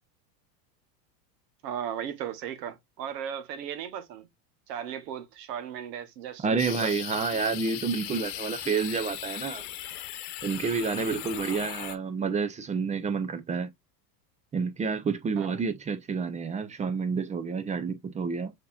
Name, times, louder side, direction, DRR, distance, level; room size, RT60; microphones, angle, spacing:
voice 1, 1.6-4.3 4.7-6.9 15.4-15.6, right 9 dB, 80° right, 1.1 m, -36 dB
voice 2, 6.4-9.7 10.4-13.7 14.5-18.5, right 5 dB, 15° right, 0.4 m, -29 dB
sound 1, 6.6-12.0, left 12 dB, 55° left, 1.0 m, -38 dB
6.4 x 2.8 x 2.3 m
supercardioid pair, 115°, 49 cm